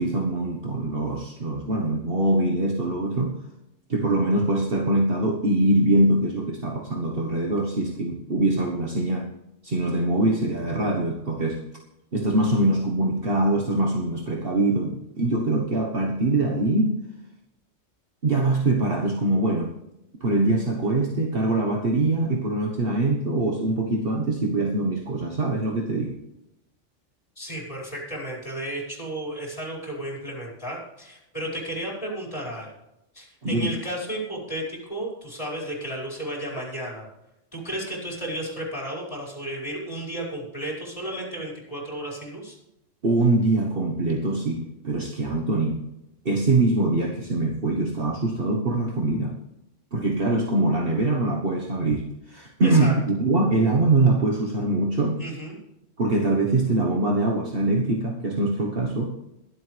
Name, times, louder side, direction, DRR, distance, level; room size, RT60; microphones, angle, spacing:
voice 1, 0.0-3.4 3.9-9.3 9.6-11.6 12.1-17.0 18.2-19.7 20.2-26.2 33.4-33.7 43.0-45.8 46.2-49.4 49.9-55.2 56.0-59.2, right 2 dB, 50° right, 0 dB, 1.6 m, -23 dB
voice 2, 27.4-32.7 33.1-37.1 37.5-42.6 52.6-53.0 55.2-55.6, right 1 dB, 25° left, -3 dB, 5.8 m, -33 dB
22.5 x 8.1 x 3.4 m, 0.89 s
omnidirectional pair, 1.3 m